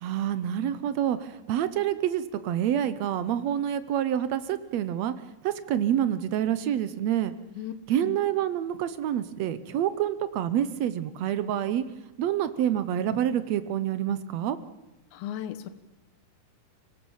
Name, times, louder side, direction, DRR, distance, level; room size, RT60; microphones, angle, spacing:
voice 1, 0.0-5.1 5.4-7.3 7.9-11.8 12.2-14.6, right 10 dB, 75° right, 13 dB, 1.6 m, -27 dB
voice 2, 15.1-15.7, left 11 dB, 85° left, 11 dB, 3.0 m, -35 dB
25.0 x 17.5 x 7.2 m, 1.0 s
omnidirectional pair, 4.1 m